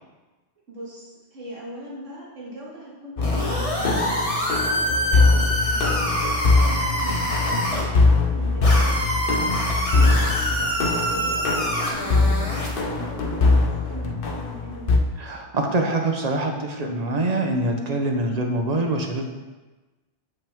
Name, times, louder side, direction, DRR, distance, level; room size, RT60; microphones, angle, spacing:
voice 1, 0.7-6.0 6.4-7.1 7.4-9.2 10.0-10.8 11.1-14.9, right 1 dB, 75° right, -6 dB, 2.3 m, -39 dB
sound 1, 3.2-15.0, left 3 dB, 55° left, 0.8 m, -22 dB
sound 2, 3.2-7.8 8.6-12.8, equal, 30° left, 1.1 m, -26 dB
voice 2, 9.9-10.2 15.2-19.3, right 2 dB, 40° right, 3 dB, 0.7 m, -25 dB
7.3 x 5.4 x 3.5 m, 1.2 s
omnidirectional pair, 1.3 m